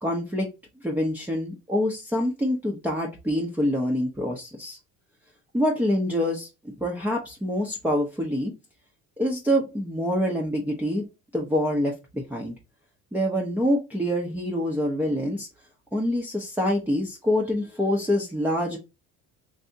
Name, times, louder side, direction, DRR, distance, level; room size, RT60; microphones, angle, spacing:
voice 1, 0.0-0.5 0.8-4.8 5.5-8.5 9.2-11.1 11.3-12.5 13.1-15.5 15.9-18.8, equal, 5° right, -2 dB, 0.6 m, -26 dB
3.4 x 2.7 x 2.6 m, 0.26 s
cardioid pair, 105°, 33 cm